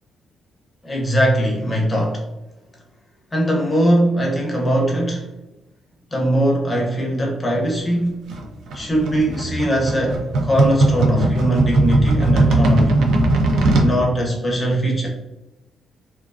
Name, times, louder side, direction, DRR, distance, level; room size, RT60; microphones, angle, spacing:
voice 1, 0.8-2.2 3.3-5.3 6.1-8.2 8.7-13.0 13.8-15.1, right 1 dB, 15° left, -1 dB, 0.6 m, -20 dB
sound 1, 8.3-13.9, right 2 dB, 75° right, 0.4 m, -18 dB
2.3 x 2.2 x 2.4 m, 1.0 s
cardioid pair, 135°, 0 cm